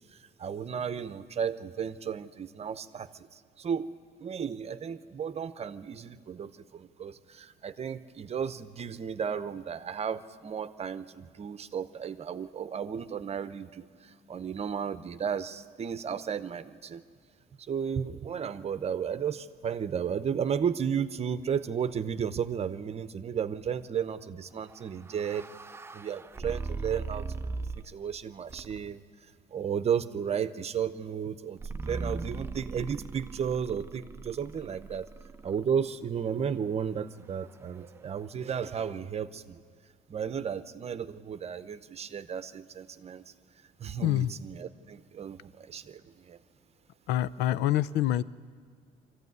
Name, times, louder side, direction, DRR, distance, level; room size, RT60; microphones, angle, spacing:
voice 1, 0.4-3.9 4.2-17.0 17.7-25.5 25.9-29.0 29.5-35.1 35.4-39.6 40.1-43.2 43.8-46.4, right 7 dB, 40° right, 12 dB, 0.8 m, -34 dB
sound 1, 24.7-28.0 28.5-29.0 31.6-35.7, right 4 dB, 15° right, 0.5 m, -39 dB
voice 2, 44.0-44.3 47.1-48.2, left 13 dB, 85° left, 18 dB, 0.5 m, -26 dB
22.5 x 14.5 x 9.5 m, 2.1 s
cardioid pair, 110°, 17 cm